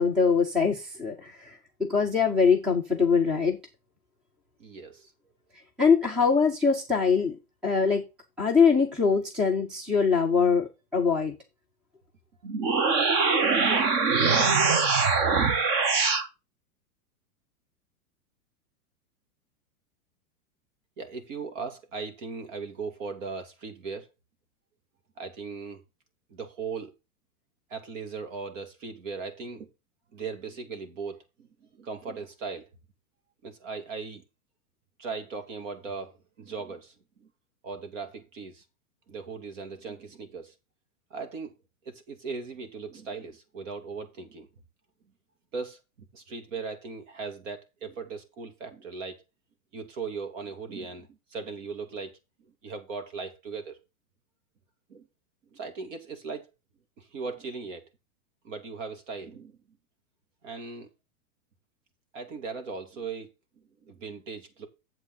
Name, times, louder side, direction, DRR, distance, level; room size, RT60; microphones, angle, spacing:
voice 1, 0.0-3.6 5.8-7.4 7.6-8.0 8.4-11.4, left 5 dB, ahead, 0.4 m, -23 dB
voice 2, 4.6-5.1 13.5-13.9 21.0-24.1 25.2-25.8 26.3-26.9 27.7-29.7 30.1-32.7 33.4-34.2 35.0-37.3 37.6-38.6 39.1-40.5 41.1-41.5 41.8-44.5 45.5-49.2 49.7-52.2 52.6-53.8 54.9-55.1 55.5-56.5 57.0-57.8 58.4-59.6 60.4-60.9 62.1-63.3 63.8-64.7, right 4 dB, 55° right, 2.8 m, -38 dB
sound 1, 12.4-16.3, right 4 dB, 30° right, 0.9 m, -23 dB
8.6 x 7.6 x 4.1 m
supercardioid pair, 155°, 45 cm